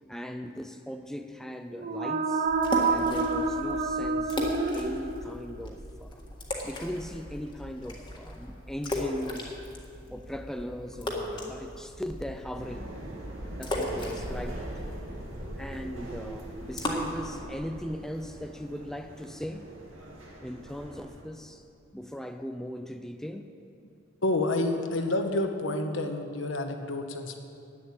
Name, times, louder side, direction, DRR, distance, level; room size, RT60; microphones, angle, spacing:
voice 1, 0.1-2.5 2.9-6.2 6.6-9.6 10.1-12.9 13.6-14.7 15.6-19.7 20.4-21.6 21.9-23.5, equal, ahead, 6 dB, 0.4 m, -39 dB
sound 1, 1.7-5.5, right 4 dB, 40° right, 0.7 m, -28 dB
sound 2, 2.5-16.9, left 1 dB, 25° left, 1.7 m, -37 dB
sound 3, 12.5-21.2, right 1 dB, 80° right, 2.1 m, -41 dB
voice 2, 24.2-27.4, left 2 dB, 70° left, 5 dB, 1.2 m, -29 dB
11.0 x 9.0 x 8.6 m, 2.6 s
head